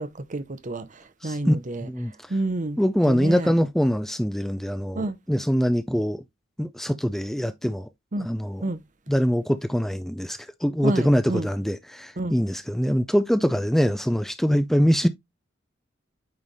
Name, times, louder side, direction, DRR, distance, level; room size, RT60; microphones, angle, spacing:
voice 1, 0.0-1.9 2.3-2.8 3.1-3.5 4.9-5.2 8.1-8.3 8.6-8.8 10.8-11.5 12.2-12.4, right 2 dB, 40° right, 0.8 m, -29 dB
voice 2, 1.2-1.6 1.8-2.1 2.8-6.2 6.6-7.9 8.2-8.6 9.1-15.1, equal, ahead, 0.4 m, -23 dB
8.9 x 3.2 x 4.0 m
head